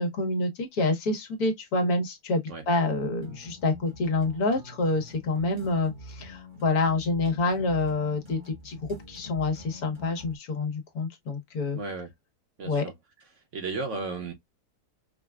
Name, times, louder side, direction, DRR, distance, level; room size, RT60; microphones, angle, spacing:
voice 1, 0.0-2.4 2.7-8.4 8.6-8.8 9.1-11.8 12.6-12.8, left 3 dB, 75° left, 1.5 m, -27 dB
sound 1, 3.1-10.4, left 1 dB, 70° right, 2.1 m, -46 dB
voice 2, 11.7-12.1 12.6-12.9 13.3-14.3, right 3 dB, 55° right, 1.3 m, -34 dB
5.0 x 2.2 x 2.2 m
omnidirectional pair, 1.6 m